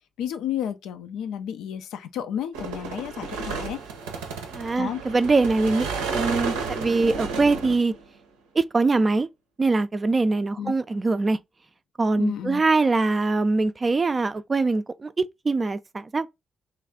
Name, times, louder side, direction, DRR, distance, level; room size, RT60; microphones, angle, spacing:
voice 1, 0.2-3.8 4.8-5.0 10.6-10.7 12.1-12.6, left 9 dB, 75° left, 0.4 m, -31 dB
sound 1, 2.5-8.0, right 4 dB, 85° right, 0.6 m, -32 dB
voice 2, 4.5-7.9 8.5-9.3 9.6-11.4 12.0-16.3, right 3 dB, 35° right, 0.4 m, -23 dB
3.2 x 2.4 x 3.5 m
hypercardioid pair, 40°, 0 cm